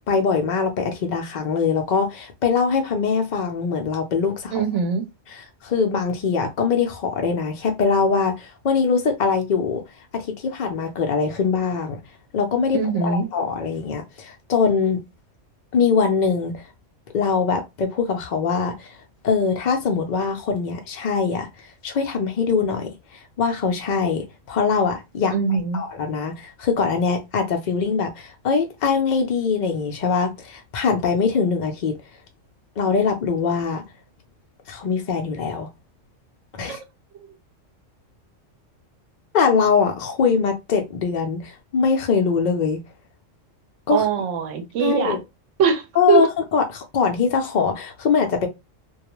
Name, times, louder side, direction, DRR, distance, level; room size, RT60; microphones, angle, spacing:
voice 1, 0.1-4.6 5.3-9.8 10.1-12.0 12.3-15.0 15.7-16.5 17.1-19.0 19.2-21.5 21.8-25.3 25.7-32.0 32.8-33.8 34.7-35.7 36.5-36.8 39.3-42.8 43.9-44.1 44.8-45.2 46.0-48.5, left 5 dB, 75° left, 0.4 m, -22 dB
voice 2, 4.5-5.1 12.7-13.3 25.3-25.8 36.6-36.8 43.9-45.2 45.6-46.3, right 6 dB, 75° right, 0.9 m, -22 dB
2.3 x 2.2 x 2.9 m
omnidirectional pair, 1.3 m